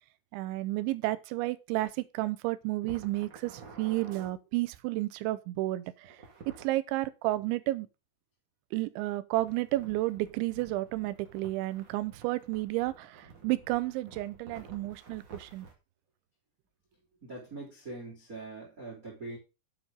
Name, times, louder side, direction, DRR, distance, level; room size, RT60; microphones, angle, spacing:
voice 1, 0.3-6.2 6.6-7.9 8.7-15.7, right 18 dB, 90° right, 3.0 m, -32 dB
sound 1, 2.8-4.3 6.0-6.7 9.4-15.7, right 4 dB, 40° right, 1.7 m, -51 dB
voice 2, 17.2-19.4, right 2 dB, 20° right, 3.3 m, -42 dB
8.9 x 8.0 x 3.8 m
omnidirectional pair, 5.2 m